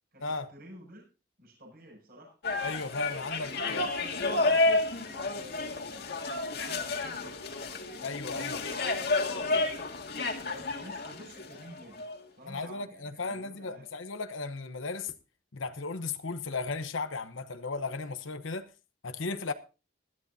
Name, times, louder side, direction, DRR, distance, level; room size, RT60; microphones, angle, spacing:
voice 1, 0.1-1.1 1.4-2.4 3.5-7.4 7.9-9.2 10.4-13.9, equal, 50° right, 7.1 m, -51 dB
sound 1, 2.4-12.2, left 3 dB, 55° left, 2.1 m, -31 dB
voice 2, 2.6-3.9 8.0-8.6 12.5-15.1 15.5-18.7 19.0-19.5, left 3 dB, 80° left, 1.0 m, -35 dB
20.0 x 13.0 x 2.8 m
head